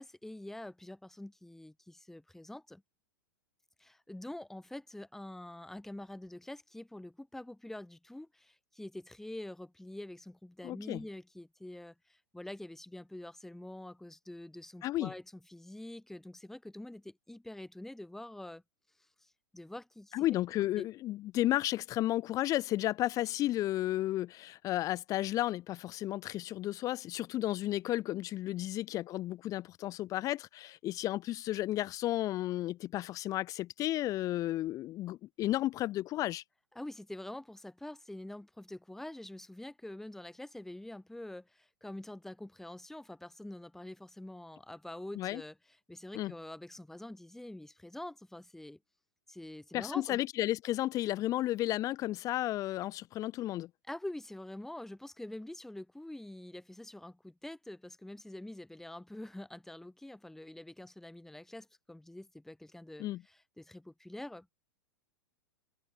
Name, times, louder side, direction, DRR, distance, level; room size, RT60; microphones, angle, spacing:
voice 1, 0.0-2.8 3.8-15.2 15.5-18.6 19.5-20.2 20.8-20.9 28.6-28.7 36.7-48.8 49.3-50.2 53.9-64.5, left 1 dB, 5° left, 2.7 m, -46 dB
voice 2, 10.6-11.0 14.8-15.1 20.1-36.4 45.1-45.4 46.1-46.3 49.7-53.7 63.0-63.2, left 15 dB, 30° left, 1.4 m, -33 dB
figure-of-eight pair, 95°, 11 cm